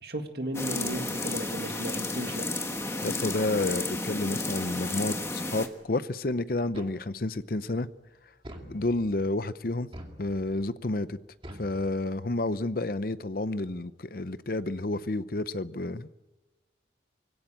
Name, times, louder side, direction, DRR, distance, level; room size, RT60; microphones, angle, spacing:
voice 1, 0.0-2.5 4.9-5.0, right 1 dB, 55° right, 5 dB, 2.1 m, -35 dB
sound 1, 0.5-5.7, left 2 dB, 15° left, 1.4 m, -32 dB
voice 2, 3.0-7.9 8.7-9.9 10.2-11.2 11.6-16.2, left 2 dB, 50° left, 14 dB, 0.7 m, -30 dB
sound 2, 6.7-7.4 8.4-9.3 9.9-10.7 11.4-12.4, equal, 30° right, 2.4 m, -46 dB
23.5 x 17.0 x 8.9 m, 1.2 s
head